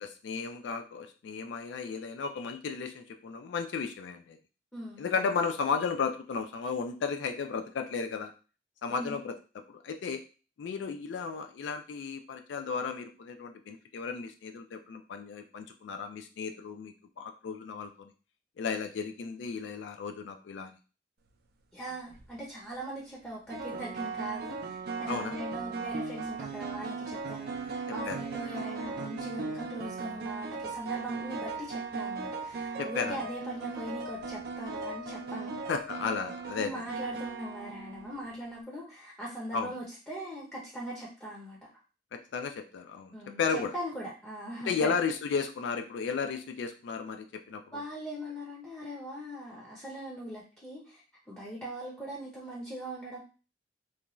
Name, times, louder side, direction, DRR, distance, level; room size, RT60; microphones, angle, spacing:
voice 1, 0.0-4.4 5.0-8.3 8.8-9.3 9.7-10.2 10.6-18.1 18.6-20.8 25.1-25.4 28.1-28.2 32.8-33.2 35.7-36.7 39.5-39.7 42.1-43.7 44.7-47.8, left 5 dB, 90° left, 6 dB, 0.3 m, -34 dB
voice 2, 4.7-5.0 8.9-9.2 21.7-35.6 36.4-41.6 43.1-44.9 47.7-51.0 51.3-53.2, right 1 dB, 10° left, -4 dB, 0.6 m, -40 dB
sound 1, 21.9-22.2 23.5-38.3, right 4 dB, 60° right, 0.4 m, -38 dB
2.6 x 2.2 x 3.0 m, 0.35 s
head